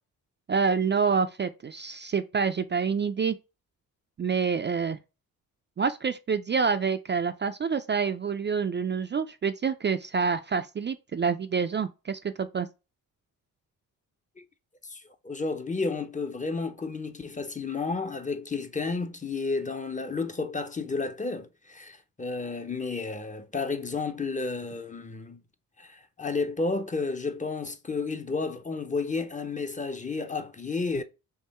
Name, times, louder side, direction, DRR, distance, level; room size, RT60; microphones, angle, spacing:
voice 1, 0.5-3.4 4.2-5.0 5.8-12.7, right 5 dB, 35° right, 0.4 m, -27 dB
voice 2, 14.8-25.4 25.8-31.0, left 4 dB, 20° left, 0.7 m, -32 dB
3.6 x 3.1 x 4.2 m
cardioid pair, 75°, 34 cm